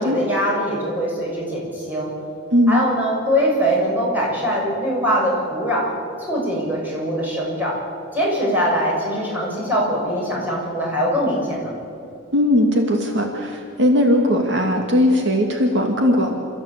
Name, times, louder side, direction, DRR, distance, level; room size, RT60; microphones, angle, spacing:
voice 1, 0.0-2.1 2.7-5.9 6.2-7.7 8.1-11.7, equal, 10° right, -5 dB, 7.2 m, -22 dB
voice 2, 12.3-16.3, left 1 dB, 65° right, 2 dB, 2.3 m, -18 dB
28.0 x 14.5 x 8.4 m, 2.6 s
head